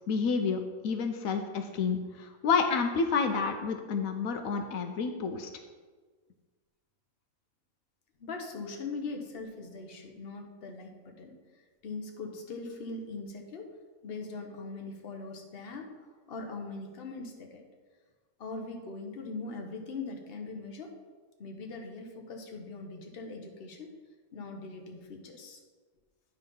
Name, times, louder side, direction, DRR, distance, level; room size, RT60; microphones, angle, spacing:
voice 1, 0.1-5.5, left 5 dB, 80° left, 6 dB, 1.1 m, -29 dB
voice 2, 8.2-11.3 11.8-13.7 14.0-15.9 16.3-17.6 18.4-20.9 21.4-23.9 24.3-25.6, left 3 dB, 50° left, 2 dB, 1.1 m, -41 dB
9.9 x 4.0 x 5.4 m, 1.4 s
omnidirectional pair, 1.4 m